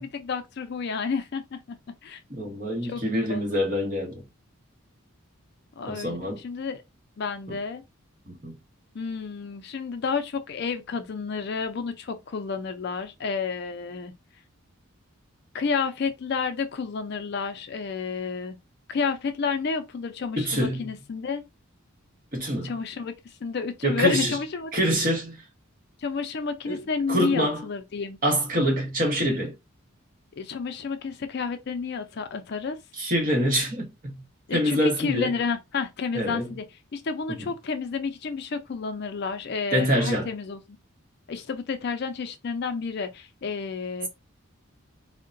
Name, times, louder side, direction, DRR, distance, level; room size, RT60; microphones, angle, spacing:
voice 1, 0.0-1.8 2.0-2.2 2.8-3.5 5.8-6.2 6.4-6.8 7.2-7.8 8.9-14.1 15.5-18.6 18.9-21.4 22.6-23.1 23.4-24.7 26.0-28.2 30.4-32.8 34.5-36.7 36.9-40.8 41.3-44.1, left 5 dB, 50° left, 0.4 m, -30 dB
voice 2, 2.3-4.2 5.9-6.4 8.3-8.6 20.4-20.9 22.3-22.7 23.8-24.4 24.7-25.4 26.7-27.6 28.2-29.5 33.0-34.2 34.5-35.3 36.1-36.5 39.7-40.3, equal, 40° right, 1.0 m, -25 dB
3.7 x 2.1 x 2.5 m
head